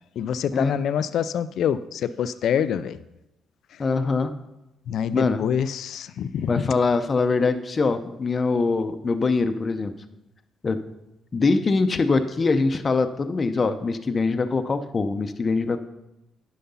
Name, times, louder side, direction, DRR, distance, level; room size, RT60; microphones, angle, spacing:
voice 1, 0.2-3.0 4.9-6.5, left 8 dB, 70° left, 14 dB, 0.4 m, -25 dB
voice 2, 3.8-4.3 5.1-5.4 6.5-9.9 10.6-10.8 11.3-15.8, left 4 dB, 35° left, 9 dB, 0.7 m, -23 dB
10.5 x 5.8 x 5.5 m, 0.93 s
cardioid pair, 90°, 0 cm